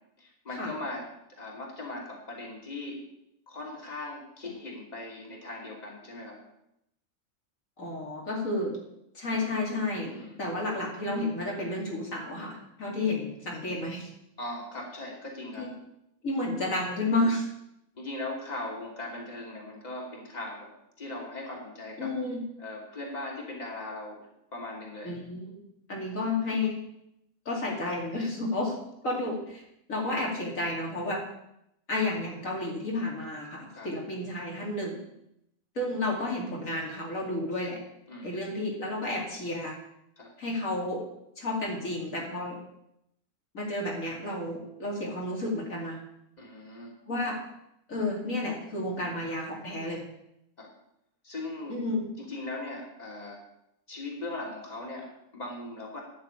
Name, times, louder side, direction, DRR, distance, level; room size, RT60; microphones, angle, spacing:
voice 1, 0.2-3.0 3.5-6.4 10.1-10.3 14.4-15.7 18.0-20.7 21.0-22.2 22.6-24.2 24.5-25.2 33.7-33.9 38.1-38.3 40.2-40.3 46.4-47.0 50.6-50.7 51.2-51.8 52.2-53.4 53.9-56.0, left 2 dB, 30° left, -2 dB, 3.3 m, -39 dB
voice 2, 7.8-8.7 9.1-14.1 15.6-15.7 16.2-17.5 22.0-22.4 25.0-25.5 25.9-26.8 27.4-28.8 29.0-29.6 29.9-31.2 31.9-35.0 35.7-37.8 38.2-39.7 40.4-41.0 41.4-42.6 43.5-46.0 47.1-47.4 47.9-50.0 51.7-52.0, left 2 dB, 70° left, -2 dB, 3.1 m, -31 dB
11.0 x 7.5 x 8.9 m, 0.80 s
omnidirectional pair, 1.4 m